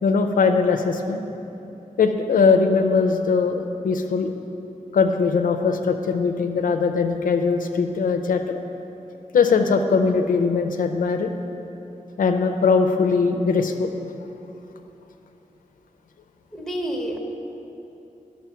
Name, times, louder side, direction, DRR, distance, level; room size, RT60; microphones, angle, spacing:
voice 1, 0.0-1.2 2.0-4.3 4.9-8.6 9.3-11.3 12.2-13.9, left 5 dB, 85° left, 5 dB, 0.6 m, -20 dB
voice 2, 16.5-17.2, equal, ahead, -2 dB, 1.2 m, -28 dB
10.5 x 6.5 x 5.7 m, 2.9 s
wide cardioid pair, 120°, 14 cm